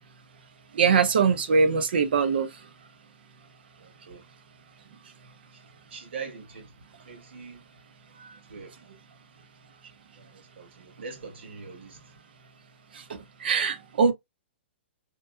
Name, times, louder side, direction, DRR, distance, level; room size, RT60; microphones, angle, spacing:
voice 1, 0.7-2.5 8.2-8.3 12.9-14.1, right 5 dB, 55° right, 0.7 m, -23 dB
voice 2, 3.8-4.2 5.9-6.7 7.0-7.6 8.5-8.8 10.2-12.0, right 5 dB, 70° right, 1.4 m, -42 dB
2.9 x 2.6 x 2.2 m
hypercardioid pair, 175°, 6 cm